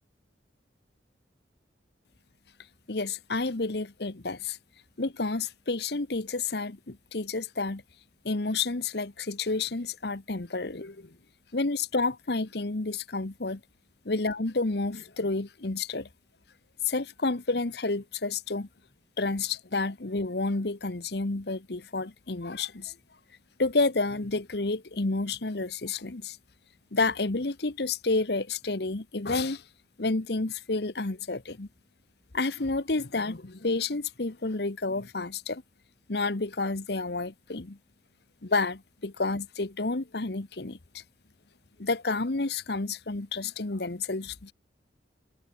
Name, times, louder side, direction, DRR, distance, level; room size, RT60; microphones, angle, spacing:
voice 1, 2.9-4.6 5.0-7.8 8.2-11.2 11.5-13.6 14.0-16.1 16.8-18.7 19.2-22.9 23.6-26.4 26.9-29.6 30.0-31.7 32.3-35.6 36.1-37.8 38.4-41.0 41.8-44.5, left 3 dB, 60° left, 1.1 m, -30 dB
head